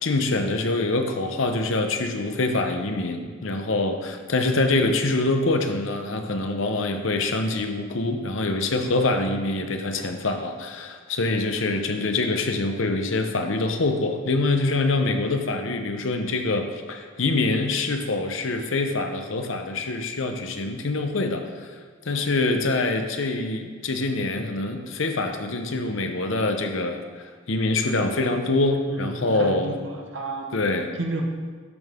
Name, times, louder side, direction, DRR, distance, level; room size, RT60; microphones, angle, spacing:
voice 1, 0.0-21.7 22.0-29.8 30.5-31.0, left 2 dB, 70° left, 5 dB, 0.8 m, -25 dB
voice 2, 28.9-29.7 30.1-30.5 31.0-31.2, right 2 dB, 65° right, 2 dB, 1.1 m, -31 dB
12.0 x 5.4 x 3.7 m, 1.5 s
head